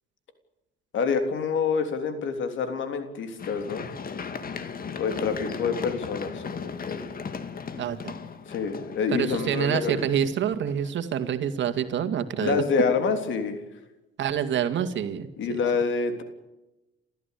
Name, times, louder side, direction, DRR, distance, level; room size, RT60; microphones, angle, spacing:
voice 1, 0.9-3.8 4.9-7.1 8.5-10.0 12.4-13.6 15.4-16.2, left 5 dB, 75° left, 7 dB, 3.5 m, -27 dB
Run, 3.4-11.3 11.8-11.9, left 5 dB, 45° left, 2.1 m, -37 dB
voice 2, 7.8-8.1 9.1-12.6 14.2-15.3, right 8 dB, 70° right, 8 dB, 2.2 m, -27 dB
29.5 x 14.0 x 8.3 m, 1.0 s
cardioid pair, 90°, 20 cm